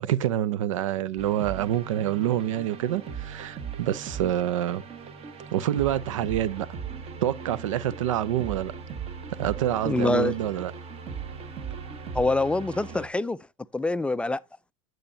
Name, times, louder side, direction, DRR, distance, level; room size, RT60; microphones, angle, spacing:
voice 1, 0.0-4.8 5.5-6.7 7.2-8.7 9.4-10.7, right 11 dB, 80° right, 0.6 m, -27 dB
sound 1, 1.2-13.1, right 6 dB, 40° right, 1.4 m, -38 dB
voice 2, 9.8-10.3 12.1-13.4 13.7-14.4, left 2 dB, 5° left, 0.3 m, -25 dB
8.7 x 7.7 x 2.7 m
hypercardioid pair, 105°, 16 cm